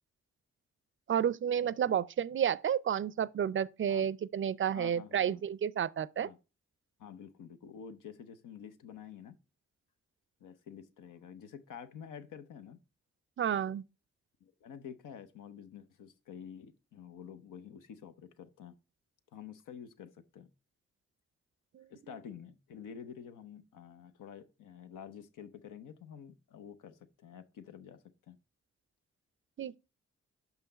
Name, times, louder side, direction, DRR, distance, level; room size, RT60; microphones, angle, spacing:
voice 1, 1.1-6.3 13.4-13.8 21.7-21.8 29.6-29.8, right 9 dB, 40° right, 0.4 m, -31 dB
voice 2, 4.7-5.4 6.2-6.4 7.0-9.4 10.4-12.8 14.4-18.7 19.3-20.5 21.9-28.4, left 8 dB, 80° left, 0.7 m, -49 dB
5.8 x 5.6 x 3.9 m
supercardioid pair, 45°, 31 cm